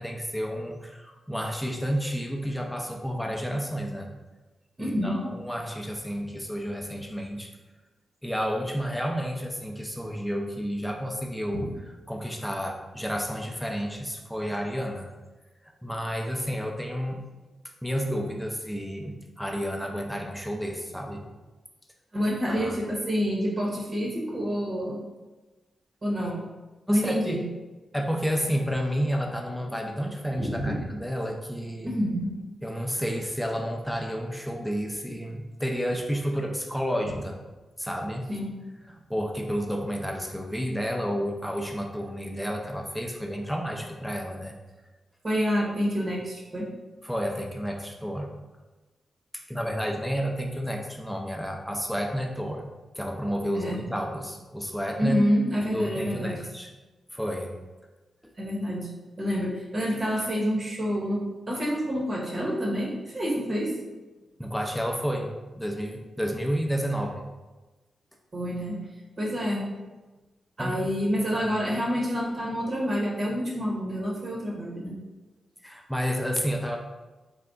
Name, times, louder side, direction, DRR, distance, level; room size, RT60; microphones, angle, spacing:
voice 1, 0.0-4.1 4.8-7.5 8.2-11.7 12.1-15.1 15.8-17.2 17.8-21.2 22.5-22.8 26.9-27.4 27.9-31.9 32.6-37.4 37.8-38.3 38.9-44.5 47.0-48.3 49.3-52.6 52.9-55.2 55.6-56.7 57.1-57.5 64.4-65.3 65.5-67.2 70.6-70.9 71.3-71.4 75.6-76.8, equal, ahead, 1 dB, 0.6 m, -31 dB
voice 2, 4.8-5.2 11.5-11.6 22.1-25.0 26.0-26.4 26.9-27.4 30.3-30.9 31.8-32.3 38.3-38.5 45.2-46.7 53.5-53.8 55.0-56.4 58.4-58.9 59.2-63.7 68.3-68.8 69.2-69.7 70.6-74.9, equal, 45° right, -4 dB, 0.9 m, -28 dB
3.5 x 2.2 x 3.8 m, 1.2 s
cardioid pair, 65°, 0 cm